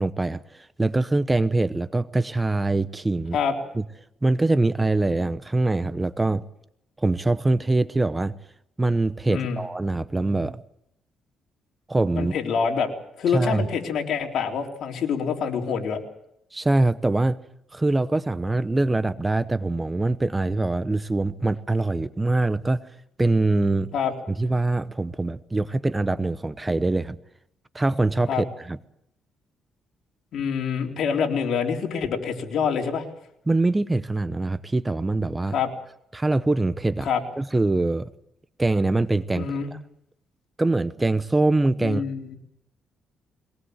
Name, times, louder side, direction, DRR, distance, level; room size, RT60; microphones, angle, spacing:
voice 1, 0.0-3.4 3.7-3.8 4.2-6.4 7.0-8.4 8.8-10.6 11.9-12.3 13.3-13.7 16.5-17.4 17.7-23.9 24.3-27.2 27.7-28.8 33.5-35.5 36.1-37.1 37.4-38.1 38.6-39.8 40.6-42.0, right 2 dB, 15° right, 14 dB, 0.9 m, -23 dB
voice 2, 9.3-9.6 12.2-12.9 13.2-16.0 23.9-24.1 28.3-28.4 30.3-33.0 35.5-35.7 37.0-37.2 39.4-39.7 41.8-42.4, left 6 dB, 70° left, 2 dB, 3.9 m, -26 dB
22.5 x 20.0 x 8.0 m, 0.76 s
cardioid pair, 90°, 0 cm